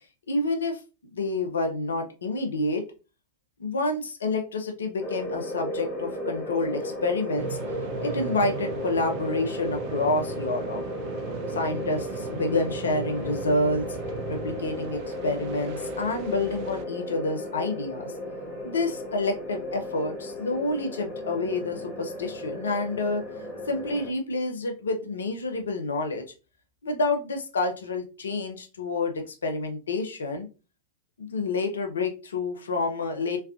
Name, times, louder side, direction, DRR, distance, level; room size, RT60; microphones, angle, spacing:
voice 1, 0.3-0.8 1.1-2.8 3.6-7.6 8.0-10.8 11.5-13.8 14.3-18.1 18.6-23.2 23.7-26.2 26.8-30.5 31.2-33.4, left 2 dB, 70° left, 4 dB, 0.6 m, -28 dB
sound 1, 5.0-24.1, left 1 dB, 35° left, 1.8 m, -35 dB
sound 2, 7.4-16.9, right 8 dB, 45° right, 0.4 m, -39 dB
3.4 x 3.3 x 2.4 m, 0.32 s
figure-of-eight pair, 90°, 0 cm